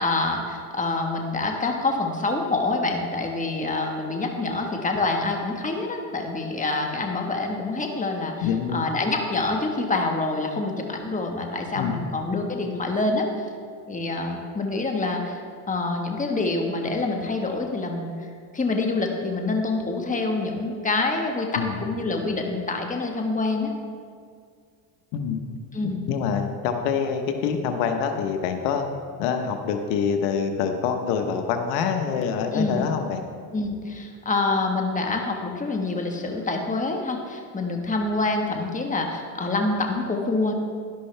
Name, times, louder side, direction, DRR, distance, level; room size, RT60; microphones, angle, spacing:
voice 1, 0.0-13.3 13.9-23.7 25.7-26.1 32.5-32.9 33.5-40.5, left 3 dB, 15° left, 2 dB, 1.4 m, -26 dB
voice 2, 8.4-8.9 11.7-12.0 21.6-21.8 25.1-25.4 26.1-28.9 29.2-33.2, left 6 dB, 80° left, 5 dB, 1.1 m, -25 dB
11.5 x 11.0 x 3.4 m, 2.1 s
supercardioid pair, 100°, 49 cm